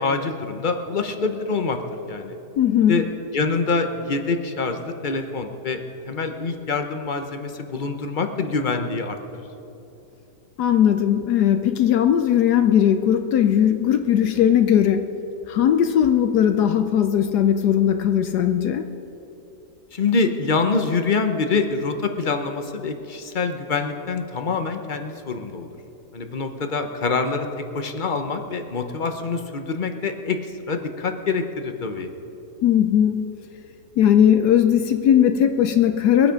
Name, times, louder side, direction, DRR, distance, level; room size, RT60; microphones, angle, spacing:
voice 1, 0.0-2.4 2.9-3.0 3.3-5.8 6.1-9.4 19.9-25.7 26.1-27.5 27.7-30.4 30.7-32.1, left 4 dB, 45° left, 6 dB, 0.7 m, -25 dB
voice 2, 2.6-3.0 10.6-15.1 15.5-18.8 32.6-33.2 34.0-36.3, left 9 dB, 75° left, 7 dB, 1.2 m, -18 dB
22.5 x 8.7 x 5.1 m, 3.0 s
omnidirectional pair, 1.8 m